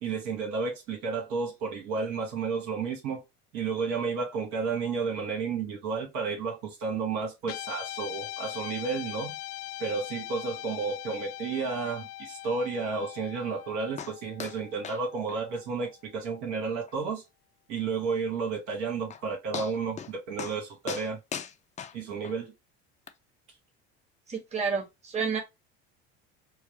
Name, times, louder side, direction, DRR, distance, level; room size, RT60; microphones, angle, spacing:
voice 1, 0.0-3.2 3.5-9.4 9.8-17.2 17.7-21.2 21.9-22.5, right 5 dB, 70° right, 1.8 m, -32 dB
Guitar, 7.4-15.9, left 16 dB, 90° left, 0.6 m, -41 dB
sound 1, 14.0-14.1 14.4-14.6 14.8-15.0 15.3-15.4 15.8-15.9 16.3-16.4 16.9-17.0 18.7-18.8 19.1-19.2 19.5-20.1 20.4-20.6 20.9-22.4 23.1-23.2, left 7 dB, 25° left, 0.5 m, -38 dB
voice 2, 24.3-25.4, right 5 dB, 20° right, 1.3 m, -30 dB
4.8 x 2.0 x 3.1 m
supercardioid pair, 90°, 31 cm